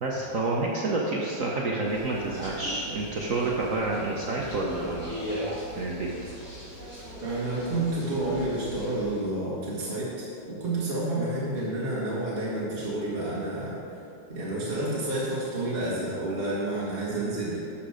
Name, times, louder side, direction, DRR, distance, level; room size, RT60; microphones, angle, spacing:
voice 1, 0.0-5.2 5.8-6.1, right 2 dB, 55° right, -3 dB, 1.1 m, -29 dB
sound 1, 1.8-9.2, equal, 55° left, 3.4 m, -39 dB
voice 2, 7.2-14.0 14.3-17.6, right 2 dB, 30° right, -8 dB, 2.0 m, -30 dB
11.5 x 6.1 x 5.1 m, 2.5 s
omnidirectional pair, 2.0 m